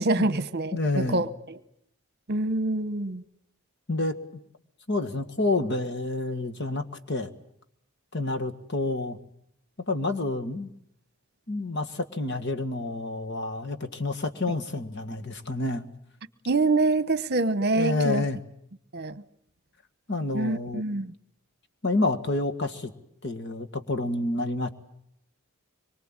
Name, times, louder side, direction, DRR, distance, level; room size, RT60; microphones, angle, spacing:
voice 1, 0.0-1.6 2.3-3.2 16.5-18.2 18.9-19.2 20.3-21.1, right 2 dB, 45° right, 1.1 m, -26 dB
voice 2, 0.7-1.2 3.9-4.2 4.9-7.3 8.1-9.2 9.9-10.7 11.5-15.8 17.8-18.4 20.1-20.8 21.8-22.9 23.2-24.7, left 2 dB, 50° left, 1.8 m, -28 dB
25.0 x 23.5 x 8.9 m
head